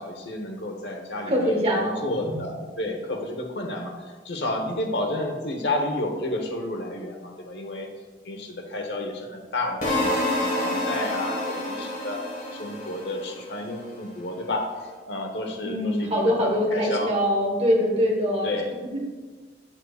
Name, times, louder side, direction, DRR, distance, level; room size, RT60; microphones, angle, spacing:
voice 1, 0.0-7.9 8.2-12.2 12.5-14.6 15.0-17.1 18.4-18.7, left 1 dB, 80° left, 3 dB, 1.0 m, -31 dB
voice 2, 1.3-2.4 15.6-18.6 18.9-19.0, equal, 35° right, -1 dB, 1.2 m, -23 dB
sound 1, 9.8-13.9, left 1 dB, 45° left, 1.6 m, -28 dB
8.0 x 7.3 x 2.4 m, 1.4 s
head